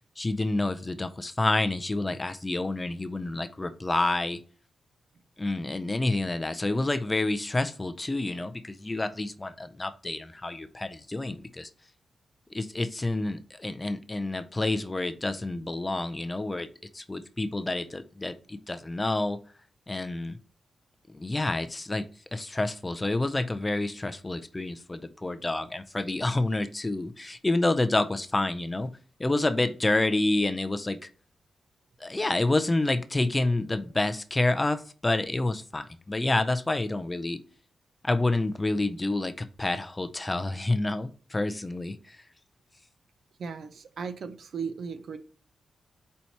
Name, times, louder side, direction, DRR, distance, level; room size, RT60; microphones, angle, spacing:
voice 1, 0.2-4.4 5.4-11.7 12.5-16.7 16.9-19.4 19.9-20.4 21.1-28.9 29.2-31.1 32.0-37.4 38.0-42.2, left 2 dB, 20° left, 10 dB, 0.4 m, -28 dB
voice 2, 43.4-45.2, right 5 dB, 70° right, 11 dB, 0.5 m, -36 dB
4.5 x 4.2 x 2.8 m, 0.40 s
wide cardioid pair, 110°, 0 cm